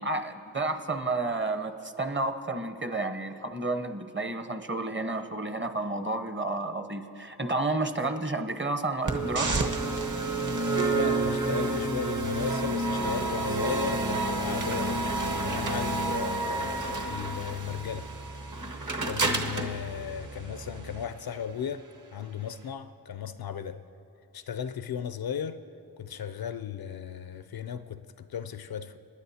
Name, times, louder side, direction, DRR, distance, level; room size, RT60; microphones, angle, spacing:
voice 1, 0.0-9.7, right 2 dB, 25° right, 0.9 m, -31 dB
sound 1, 9.0-21.0, right 2 dB, 45° right, 1.1 m, -29 dB
voice 2, 10.6-15.1 15.4-18.1 19.0-21.9 22.1-23.8 24.3-25.6 26.0-29.0, left 8 dB, 60° left, 0.5 m, -36 dB
28.5 x 9.9 x 2.8 m
cardioid pair, 65°, 42 cm